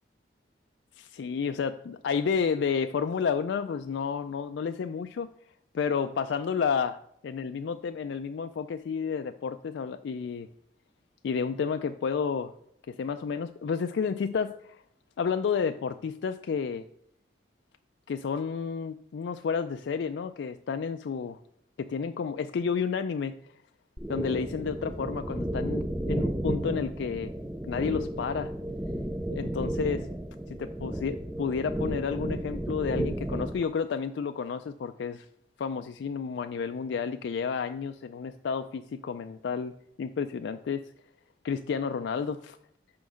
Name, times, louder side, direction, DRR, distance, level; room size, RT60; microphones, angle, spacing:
voice 1, 1.0-5.3 5.7-10.5 11.2-12.5 12.9-14.8 15.2-16.8 18.1-21.4 21.8-23.3 24.1-27.3 27.6-28.5 29.3-30.1 30.6-35.3 35.6-39.7 40.0-40.8 41.4-42.6, left 6 dB, 75° left, 8 dB, 0.3 m, -31 dB
sound 1, 24.0-33.6, right 1 dB, 10° right, 0.3 m, -33 dB
5.8 x 5.2 x 6.2 m, 0.70 s
head